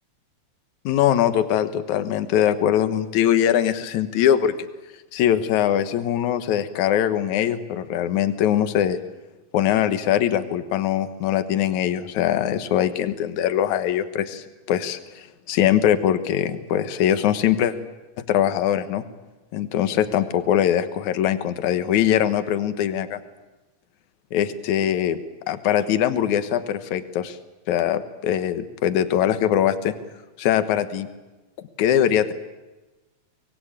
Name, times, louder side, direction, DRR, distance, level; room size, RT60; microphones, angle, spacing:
voice 1, 0.8-4.5 5.1-9.0 9.5-17.7 18.2-19.0 19.5-23.2 24.3-25.2 25.5-27.4 27.7-29.9 30.4-31.1 31.8-32.3, left 10 dB, 60° left, 10 dB, 2.3 m, -22 dB
24.5 x 21.0 x 8.8 m, 1.1 s
omnidirectional pair, 4.3 m